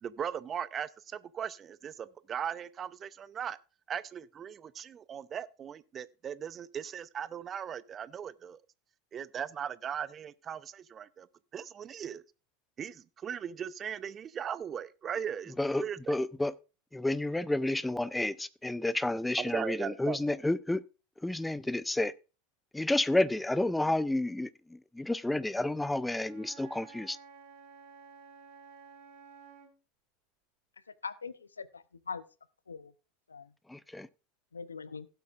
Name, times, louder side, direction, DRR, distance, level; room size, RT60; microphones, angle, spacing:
voice 1, 0.0-3.6 3.9-8.6 9.1-11.3 11.5-12.2 12.8-16.2 19.4-20.2, right 8 dB, 35° right, 0.6 m, -38 dB
voice 2, 15.6-16.5 16.9-20.8 21.2-22.1 22.7-27.2 33.7-34.1, left 2 dB, 5° left, 0.6 m, -30 dB
Wind instrument woodwind instrument, 26.2-29.8, right 6 dB, 60° right, 3.7 m, -53 dB
voice 3, 31.0-32.2 32.7-32.9 33.3-33.5 34.5-35.1, left 5 dB, 90° left, 0.6 m, -41 dB
16.5 x 7.8 x 2.5 m
hypercardioid pair, 80°, 0 cm